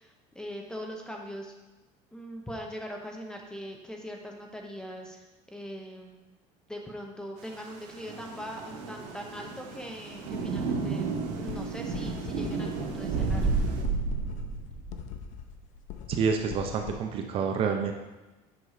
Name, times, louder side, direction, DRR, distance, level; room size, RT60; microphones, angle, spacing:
voice 1, 0.0-1.5 2.1-6.2 6.7-11.1 11.4-13.5, equal, 5° left, 1 dB, 0.8 m, -41 dB
Thunder / Rain, 7.4-13.8, right 5 dB, 80° right, 1.6 m, -35 dB
sound 1, 11.1-17.0, left 10 dB, 50° left, 0.7 m, -42 dB
sound 2, 13.0-15.4, right 3 dB, 55° right, 2.3 m, -29 dB
voice 2, 16.1-17.9, right 6 dB, 35° right, 4 dB, 0.6 m, -28 dB
8.1 x 5.3 x 4.9 m, 1.1 s
cardioid pair, 165°, 16 cm